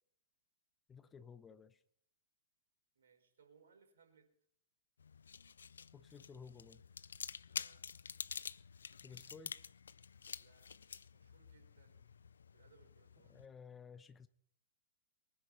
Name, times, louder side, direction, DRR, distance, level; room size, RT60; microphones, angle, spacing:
voice 1, 0.9-1.8 5.9-6.8 9.0-9.5 13.3-14.3, left 6 dB, 15° left, 0.8 m, -55 dB
voice 2, 2.9-4.3 7.5-7.9 10.4-10.7 11.1-12.1 12.5-13.5, right 5 dB, 65° right, 5.1 m, -68 dB
sound 1, 5.0-13.5, left 6 dB, 70° left, 0.5 m, -49 dB
23.5 x 9.9 x 4.3 m
figure-of-eight pair, 105°, 0 cm